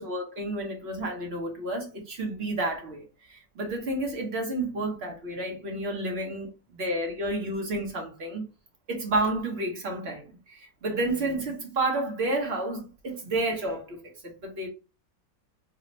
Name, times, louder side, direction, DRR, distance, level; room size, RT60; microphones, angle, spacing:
voice 1, 0.0-8.4 8.9-14.7, right 2 dB, 50° right, 0.8 m, -31 dB
3.3 x 2.1 x 3.9 m
omnidirectional pair, 2.0 m